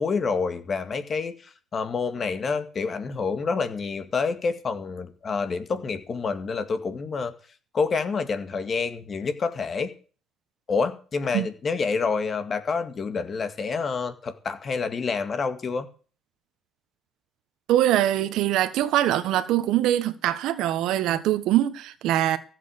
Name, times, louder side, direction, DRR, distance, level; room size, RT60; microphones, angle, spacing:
voice 1, 0.0-1.3 1.7-7.3 7.7-9.9 10.7-15.9, left 4 dB, 30° left, 2.1 m, -28 dB
voice 2, 17.7-22.4, right 13 dB, 70° right, 1.4 m, -23 dB
15.0 x 8.3 x 6.5 m
cardioid pair, 145°, 0 cm